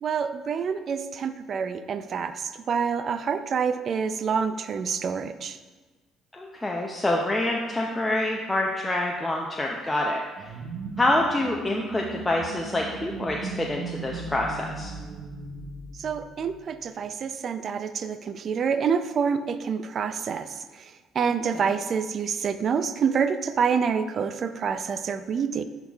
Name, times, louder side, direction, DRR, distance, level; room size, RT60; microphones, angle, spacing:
voice 1, 0.0-5.6 16.0-25.6, right 6 dB, 50° right, 11 dB, 0.4 m, -27 dB
voice 2, 6.3-10.5 11.0-14.9 21.3-21.4, left 1 dB, 15° left, -1 dB, 0.5 m, -26 dB
sound 1, 10.4-16.8, right 4 dB, 75° right, 0.7 m, -38 dB
10.5 x 3.9 x 2.3 m, 1.3 s
cardioid pair, 100°, 0 cm